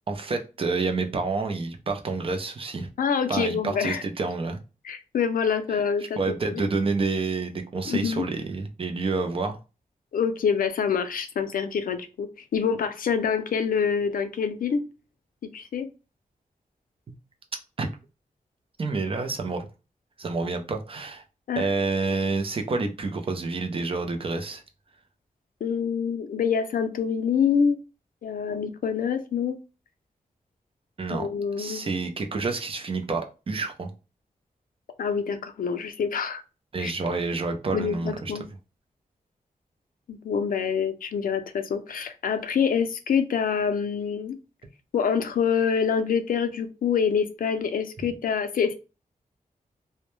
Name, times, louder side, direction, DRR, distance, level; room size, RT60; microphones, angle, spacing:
voice 1, 0.1-2.9 3.3-4.6 6.2-9.6 17.8-17.9 18.8-19.7 20.2-21.2 21.6-24.6 31.0-31.3 31.6-33.9 36.7-38.3, right 3 dB, 40° right, 0.4 m, -28 dB
voice 2, 3.0-4.0 4.8-6.6 7.9-8.2 10.1-14.8 15.5-15.9 21.5-21.7 25.6-27.8 28.2-29.6 31.1-31.9 35.0-36.4 36.8-36.9 37.7-38.4 40.1-44.4 44.9-48.7, left 6 dB, 80° left, 0.4 m, -26 dB
2.1 x 2.1 x 3.0 m
wide cardioid pair, 120°, 14 cm